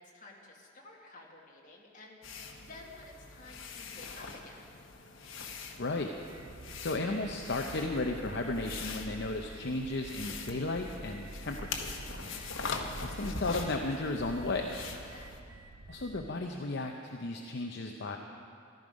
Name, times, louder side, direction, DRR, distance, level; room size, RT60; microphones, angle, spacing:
voice 1, 0.0-4.7 12.1-12.5 15.0-15.4, left 2 dB, 40° left, -2 dB, 1.9 m, -53 dB
sound 1, 2.2-15.4, left 4 dB, 85° left, 1.1 m, -43 dB
voice 2, 5.8-6.1 6.8-11.9 13.0-14.7 15.9-18.2, left 2 dB, 60° left, 3 dB, 0.7 m, -34 dB
sound 2, 6.3-16.3, right 2 dB, 85° right, 0.7 m, -48 dB
14.5 x 12.0 x 5.2 m, 2.4 s
head